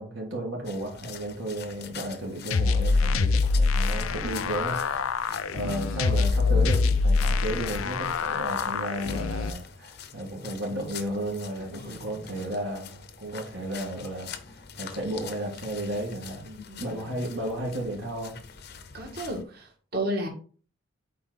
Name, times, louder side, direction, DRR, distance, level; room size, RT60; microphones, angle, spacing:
voice 1, 0.0-5.1 5.5-16.5 16.8-18.4, right 1 dB, 65° right, -2 dB, 1.8 m, -33 dB
sound 1, 0.6-19.4, left 7 dB, 50° left, 0.8 m, -45 dB
sound 2, 2.5-9.5, left 4 dB, 75° left, 0.5 m, -25 dB
voice 2, 5.3-5.6 11.6-12.4 16.5-17.2 18.9-20.3, right 1 dB, 45° right, 0 dB, 2.0 m, -35 dB
7.7 x 4.6 x 3.9 m, 0.40 s
head